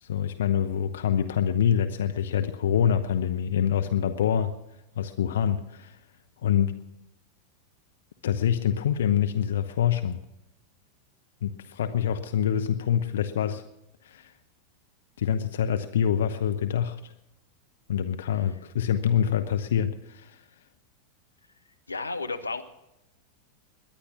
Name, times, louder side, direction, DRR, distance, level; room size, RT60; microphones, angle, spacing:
voice 1, 0.0-4.5 5.0-6.0 6.4-6.7 8.2-10.2 11.4-13.6 14.0-14.3 15.2-17.1 17.9-20.4, left 9 dB, 65° left, 8 dB, 0.8 m, -25 dB
voice 2, 21.9-22.6, left 3 dB, 85° left, 7 dB, 1.0 m, -32 dB
21.5 x 10.0 x 6.0 m, 0.92 s
figure-of-eight pair, 90°, 0 cm